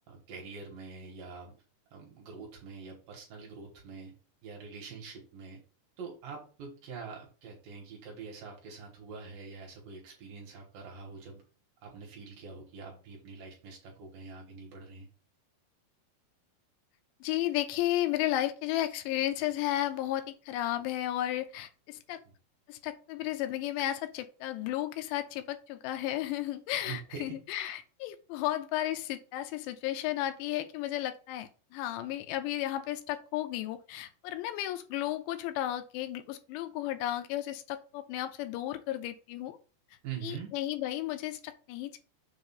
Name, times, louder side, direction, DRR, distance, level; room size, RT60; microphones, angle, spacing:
voice 1, 0.1-1.5 1.9-4.2 4.4-5.6 6.0-11.4 11.8-15.1 22.1-22.3 26.9-27.4 40.0-40.5, right 5 dB, 65° right, -1 dB, 2.6 m, -45 dB
voice 2, 17.2-22.2 22.7-39.6 40.2-42.0, left 13 dB, 90° left, 8 dB, 2.9 m, -33 dB
6.9 x 2.6 x 5.5 m, 0.37 s
omnidirectional pair, 4.9 m